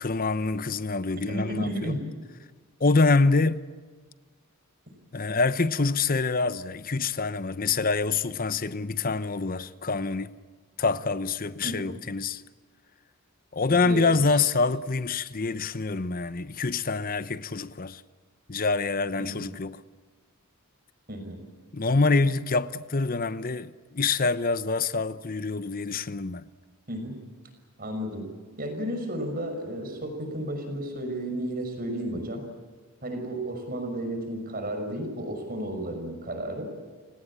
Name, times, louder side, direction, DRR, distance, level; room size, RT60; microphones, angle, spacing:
voice 1, 0.0-1.9 2.8-3.6 5.1-10.3 10.8-12.4 13.5-18.0 18.5-19.8 21.7-26.4, left 3 dB, 40° left, 0.8 m, -26 dB
voice 2, 1.3-2.0 11.6-11.9 13.7-14.0 14.3-14.4 19.2-19.5 21.1-21.4 26.9-27.1 27.8-28.3 28.6-32.4 33.0-36.7, right 1 dB, 40° right, 6.0 m, -33 dB
30.0 x 18.0 x 8.8 m
head